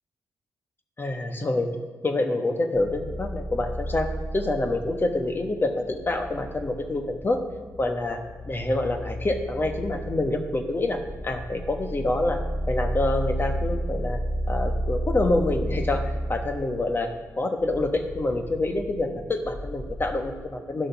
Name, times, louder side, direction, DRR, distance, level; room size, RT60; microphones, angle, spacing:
voice 1, 1.0-1.7 2.0-7.4 7.8-8.2 8.5-12.4 12.7-14.2 14.5-20.9, left 2 dB, 35° left, 6 dB, 1.2 m, -27 dB
sound 1, 2.7-20.2, right 1 dB, 15° left, 3.4 m, -32 dB
11.0 x 6.3 x 5.8 m, 1.4 s
cardioid pair, 65°, 7 cm